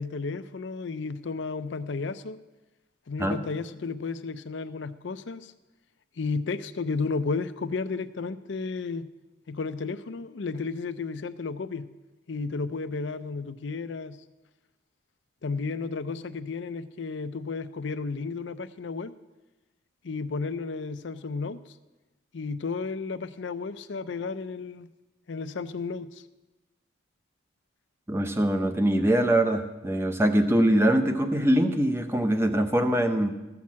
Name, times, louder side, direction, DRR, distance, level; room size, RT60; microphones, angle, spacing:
voice 1, 0.0-2.4 3.1-5.5 6.2-9.1 9.5-11.9 12.3-14.2 15.4-19.1 20.0-21.8 22.3-24.9 25.3-26.2, left 4 dB, 70° left, 13 dB, 0.5 m, -33 dB
voice 2, 28.1-33.3, right 1 dB, 10° right, 8 dB, 0.7 m, -23 dB
14.0 x 5.9 x 7.4 m, 1.1 s
head